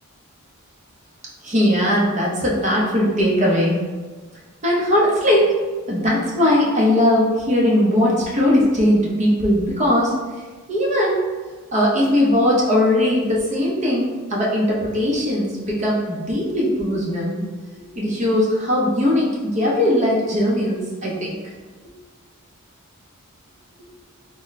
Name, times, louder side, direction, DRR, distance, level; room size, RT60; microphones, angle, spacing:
voice 1, 1.4-3.8 4.6-5.5 5.9-10.1 10.7-11.2 11.7-17.4 17.9-21.3, left 1 dB, 35° right, -4 dB, 0.9 m, -19 dB
3.7 x 2.2 x 4.0 m, 1.3 s
head